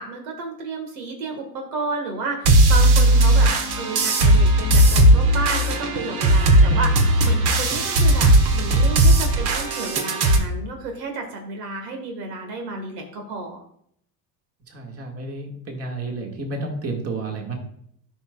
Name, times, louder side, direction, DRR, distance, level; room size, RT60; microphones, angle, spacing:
voice 1, 0.0-3.5 3.8-13.6, right 3 dB, 70° right, 3 dB, 1.7 m, -31 dB
sound 1, 2.5-10.4, right 1 dB, 50° right, 1.4 m, -17 dB
voice 2, 14.7-17.5, right 3 dB, 30° right, 1 dB, 1.9 m, -31 dB
12.5 x 5.4 x 2.3 m, 0.68 s
hypercardioid pair, 85°, 49 cm